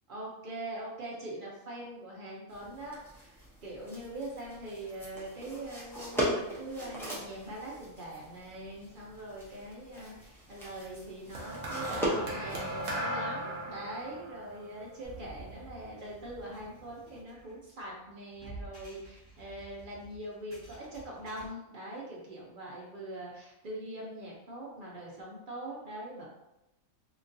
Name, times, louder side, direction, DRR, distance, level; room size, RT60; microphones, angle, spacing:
voice 1, 0.1-26.3, right 1 dB, 50° right, -4 dB, 0.7 m, -42 dB
sound 1, 2.5-13.0, equal, 5° left, 0.4 m, -39 dB
sound 2, 11.4-15.8 16.7-17.0, right 1 dB, 75° right, 1.0 m, -37 dB
sound 3, 15.0-21.5, right 2 dB, 15° right, 0.8 m, -51 dB
2.9 x 2.4 x 2.6 m, 0.90 s
omnidirectional pair, 1.4 m